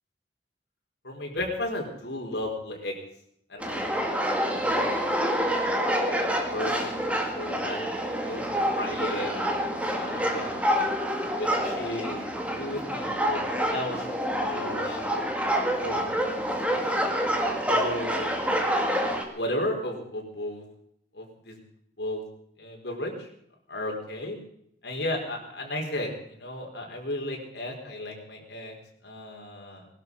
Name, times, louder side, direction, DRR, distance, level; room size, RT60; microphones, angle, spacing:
voice 1, 1.0-2.9 3.5-5.6 6.2-8.5 8.7-9.3 9.9-10.7 11.4-14.1 14.3-15.3 15.7-16.4 16.6-16.8 17.7-18.3 19.3-20.6 21.1-21.6 22.0-22.2 22.6-23.3 23.7-24.4 24.8-28.7 29.0-29.9, left 1 dB, 65° left, 0 dB, 4.6 m, -34 dB
sound 1, 3.6-19.2, equal, 5° right, 2.0 m, -27 dB
20.0 x 12.0 x 5.5 m, 0.72 s
head